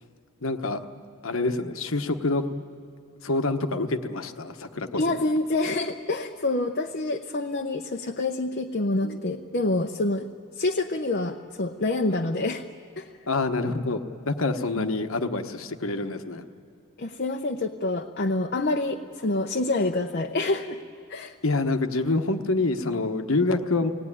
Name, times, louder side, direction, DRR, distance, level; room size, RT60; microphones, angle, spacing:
voice 1, 0.4-0.8 1.2-2.5 3.2-5.0 9.0-9.2 13.3-16.5 21.4-23.9, left 2 dB, 65° left, 7 dB, 1.2 m, -26 dB
voice 2, 5.0-10.3 10.6-12.6 13.0-13.1 14.7-14.9 17.0-20.8 21.1-21.3, left 2 dB, 45° left, 3 dB, 0.8 m, -27 dB
24.5 x 18.0 x 9.9 m, 2.7 s
head